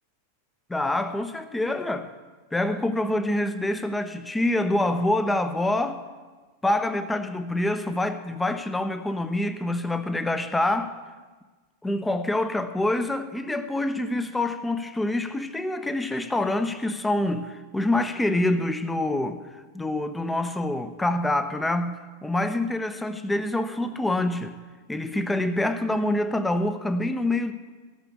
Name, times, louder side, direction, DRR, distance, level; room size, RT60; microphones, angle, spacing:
voice 1, 0.7-2.1 2.5-6.0 6.6-11.0 11.8-19.4 19.7-24.6 24.9-27.5, left 1 dB, 5° left, 0.9 m, -26 dB
14.0 x 6.9 x 8.4 m
figure-of-eight pair, 90°, 0 cm